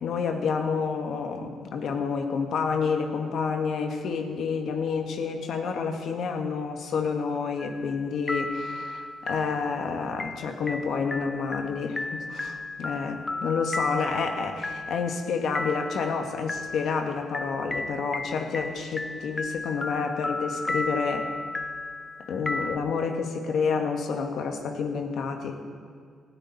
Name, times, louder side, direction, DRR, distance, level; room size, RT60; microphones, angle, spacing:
voice 1, 0.0-21.3 22.3-25.6, left 5 dB, 70° left, 5 dB, 1.6 m, -29 dB
sound 1, 7.6-8.0 8.3-22.8, left 2 dB, 20° left, 0.7 m, -34 dB
19.0 x 13.5 x 4.2 m, 2.1 s
cardioid pair, 90°, 0 cm